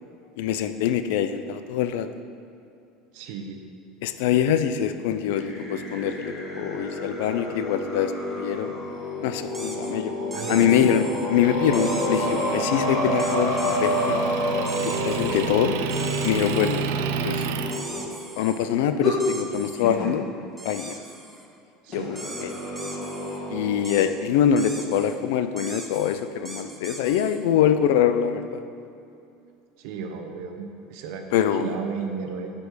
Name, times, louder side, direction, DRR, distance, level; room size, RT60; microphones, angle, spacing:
voice 1, 0.4-2.1 4.0-8.7 9.2-10.1 10.5-14.2 14.8-15.9 16.2-16.8 17.2-17.5 18.4-20.2 20.6-20.9 21.9-22.5 23.5-28.6 31.3-31.7, left 9 dB, 75° left, 10 dB, 0.5 m, -24 dB
voice 2, 3.1-3.6 10.3-10.9 15.3-15.5 21.8-22.1 29.8-31.2 31.5-32.5, right 5 dB, 60° right, 4 dB, 0.9 m, -34 dB
sound 1, 5.3-18.1 19.0-19.2 19.8-20.2 21.9-23.8, equal, 25° left, 1.5 m, -29 dB
sound 2, 9.5-9.9 10.3-11.3 11.7-12.6 13.2-14.1 14.7-15.5 15.9-16.9 17.7-18.7 19.2-19.8 20.6-21.5 22.1-23.4 23.8-24.1 24.6-25.2 25.6-27.4, right 2 dB, 5° right, 0.6 m, -40 dB
Motor vehicle (road) / Engine, 11.4-17.8, right 7 dB, 75° right, 0.4 m, -31 dB
8.2 x 5.2 x 6.3 m, 2.6 s
cardioid pair, 165°, 0 cm